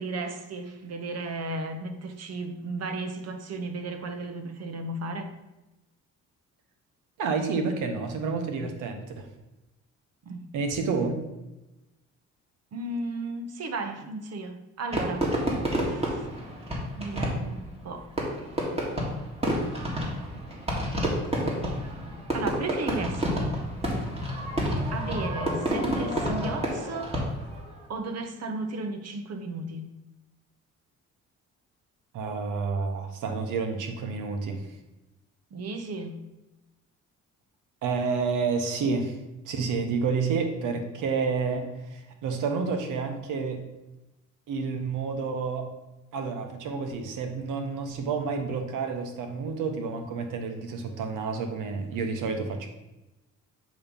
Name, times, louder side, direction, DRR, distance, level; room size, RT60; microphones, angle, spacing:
voice 1, 0.0-5.3 10.2-10.4 12.7-15.3 15.8-16.2 17.0-18.1 22.3-23.5 24.9-27.2 27.9-29.9 35.5-36.1, right 2 dB, 55° right, 7 dB, 1.0 m, -35 dB
voice 2, 7.2-9.3 10.5-11.2 32.1-34.7 37.8-39.2 39.5-43.6 44.5-45.7 46.1-52.7, right 4 dB, 90° right, 5 dB, 1.1 m, -29 dB
Fireworks, 14.9-27.6, equal, 20° right, 2.0 m, -29 dB
8.5 x 3.1 x 5.3 m, 0.98 s
cardioid pair, 90°, 30 cm